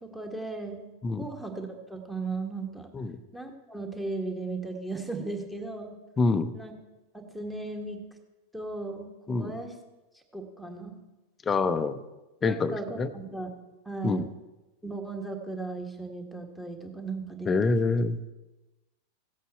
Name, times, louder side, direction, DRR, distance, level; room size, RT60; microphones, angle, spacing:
voice 1, 0.0-0.9 1.2-2.9 3.3-5.9 6.5-6.7 7.1-8.0 8.5-9.7 10.1-11.0 12.4-13.5 13.8-14.3 14.8-17.7, right 3 dB, 5° right, 3 dB, 1.6 m, -36 dB
voice 2, 6.2-6.5 9.3-9.5 11.4-12.0 12.4-13.1 14.0-14.3 17.4-18.3, left 3 dB, 20° left, 11 dB, 0.7 m, -26 dB
16.0 x 8.2 x 4.3 m, 1.1 s
figure-of-eight pair, 90°, 0 cm